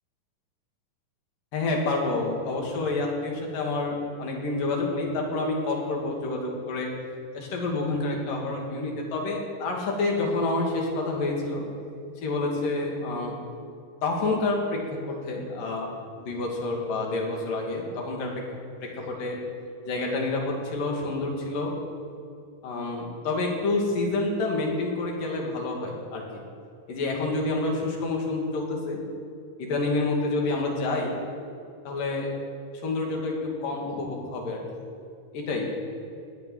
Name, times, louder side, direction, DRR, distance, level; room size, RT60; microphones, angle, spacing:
voice 1, 1.5-6.9 7.3-11.6 12.2-13.4 14.0-14.6 14.9-15.0 15.2-15.9 16.2-18.3 18.8-19.4 19.8-21.7 22.6-26.4 26.9-29.0 29.6-31.2 31.9-32.3 32.8-33.3 33.6-34.6 35.3-35.7, left 2 dB, 70° left, 0 dB, 3.9 m, -28 dB
19.5 x 6.5 x 9.0 m, 2.5 s
omnidirectional pair, 4.0 m